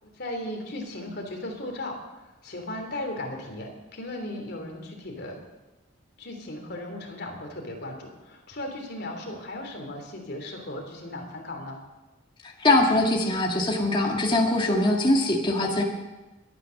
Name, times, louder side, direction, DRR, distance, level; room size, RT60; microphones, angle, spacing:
voice 1, 0.0-2.0 2.4-5.4 6.2-11.8, left 1 dB, 50° left, 2 dB, 3.3 m, -36 dB
voice 2, 12.6-15.8, left 2 dB, 25° left, 0 dB, 1.9 m, -22 dB
22.0 x 9.7 x 6.5 m, 1.1 s
head